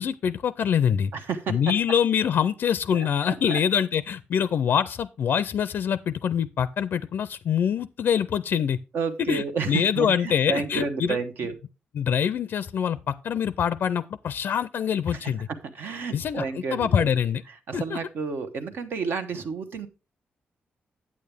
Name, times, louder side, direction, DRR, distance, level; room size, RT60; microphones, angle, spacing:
voice 1, 0.0-1.1 1.5-8.8 9.3-11.2 11.9-15.5 16.1-16.5 16.7-17.4 17.7-18.0, left 8 dB, 65° left, 0.4 m, -25 dB
voice 2, 1.1-1.6 2.9-3.6 8.9-11.6 15.1-17.2 17.5-19.9, right 5 dB, 75° right, 1.1 m, -31 dB
8.6 x 8.6 x 3.4 m
cardioid pair, 120°, 4 cm